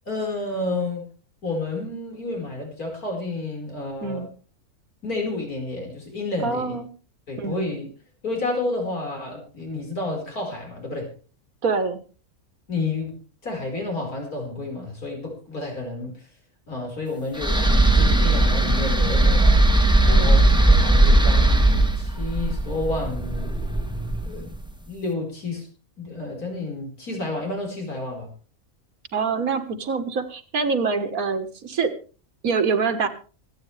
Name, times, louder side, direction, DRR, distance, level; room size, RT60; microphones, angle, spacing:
voice 1, 0.1-1.1 1.4-4.2 5.0-6.8 7.3-7.9 8.2-11.1 12.7-13.2 13.4-16.3 16.7-19.6 20.0-23.6 24.3-24.5 24.9-25.7 26.0-28.3, left 2 dB, 85° left, 1 dB, 5.3 m, -30 dB
voice 2, 6.4-6.9 7.4-7.7 11.6-12.0 20.1-20.4 29.1-31.9 32.4-33.1, right 5 dB, 75° right, 9 dB, 1.9 m, -25 dB
sound 1, 17.4-24.6, right 2 dB, 5° right, 1.2 m, -18 dB
25.5 x 9.2 x 3.3 m, 0.37 s
omnidirectional pair, 1.5 m